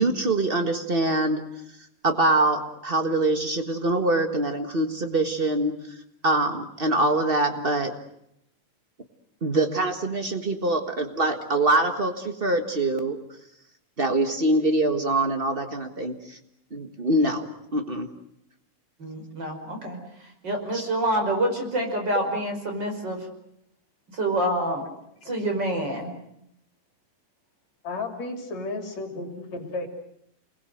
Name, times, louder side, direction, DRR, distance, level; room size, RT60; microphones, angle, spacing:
voice 1, 0.0-1.4 2.0-5.7 6.2-7.9 9.4-13.2 14.0-16.4 16.7-17.4 17.7-18.1 20.7-20.8, right 2 dB, 85° right, 6 dB, 0.5 m, -24 dB
voice 2, 19.0-20.0 20.4-23.3 24.1-24.8 25.3-26.1, right 1 dB, 30° right, 3 dB, 6.0 m, -27 dB
voice 3, 27.8-29.9, left 3 dB, 55° left, 4 dB, 4.0 m, -33 dB
29.5 x 21.0 x 7.9 m, 0.77 s
omnidirectional pair, 3.9 m